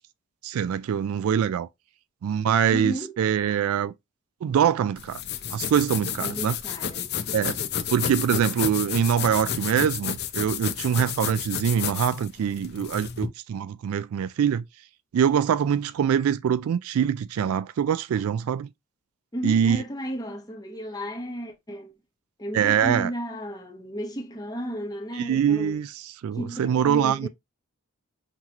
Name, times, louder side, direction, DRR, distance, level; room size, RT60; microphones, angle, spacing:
voice 1, 0.4-1.7 2.2-3.9 4.4-5.2 5.5-6.6 7.3-7.6 7.9-14.6 15.1-18.7 19.4-19.8 22.5-23.1 25.1-27.3, right 8 dB, 80° right, 0.3 m, -24 dB
voice 2, 2.7-3.2 6.2-7.6 19.3-21.9 22.4-25.8 26.3-27.3, equal, 20° left, 1.0 m, -34 dB
sound 1, 5.0-13.3, left 8 dB, 50° left, 0.6 m, -31 dB
5.9 x 3.0 x 2.9 m
head